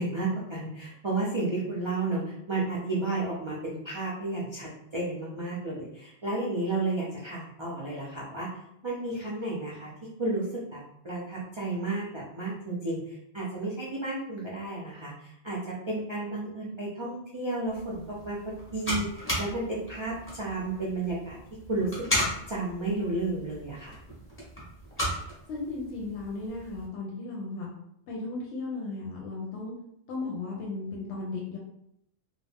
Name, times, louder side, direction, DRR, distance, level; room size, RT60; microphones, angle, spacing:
voice 1, 0.0-8.5 8.8-9.9 10.2-18.4 18.7-21.4 21.7-22.0 22.5-24.0, right 2 dB, 45° right, -5 dB, 0.4 m, -32 dB
sound 1, 17.7-26.9, equal, 15° left, 0.7 m, -36 dB
voice 2, 25.5-27.7 28.1-29.7 30.1-31.6, left 3 dB, 85° left, -2 dB, 0.9 m, -35 dB
2.4 x 2.1 x 3.3 m, 0.78 s
omnidirectional pair, 1.2 m